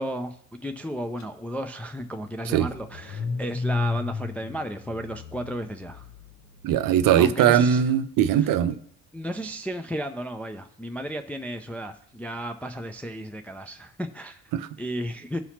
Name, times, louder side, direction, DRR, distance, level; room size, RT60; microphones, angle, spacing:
voice 1, 0.0-6.0 7.2-7.8 8.3-8.5 9.1-14.4 14.8-15.4, equal, 5° left, 5 dB, 0.4 m, -33 dB
Car / Engine starting, 1.2-1.3 1.6-6.8, left 4 dB, 35° left, 1.0 m, -34 dB
voice 2, 6.6-8.8 14.5-14.7, right 9 dB, 45° right, 11 dB, 0.7 m, -20 dB
16.0 x 5.6 x 2.8 m, 0.64 s
figure-of-eight pair, 55°, 46 cm